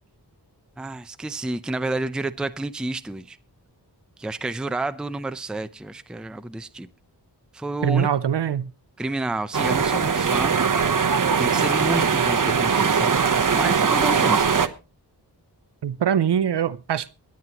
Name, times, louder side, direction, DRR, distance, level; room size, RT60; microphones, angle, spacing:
voice 1, 0.8-3.4 4.2-6.9 7.5-8.1 9.0-10.6 11.4-13.2 13.5-14.6, right 2 dB, ahead, 0.6 m, -30 dB
voice 2, 7.8-8.7 15.8-17.1, right 8 dB, 80° right, 0.6 m, -22 dB
sound 1, 9.5-14.7, right 6 dB, 50° right, 0.9 m, -21 dB
23.5 x 9.4 x 2.9 m
wide cardioid pair, 80°, 41 cm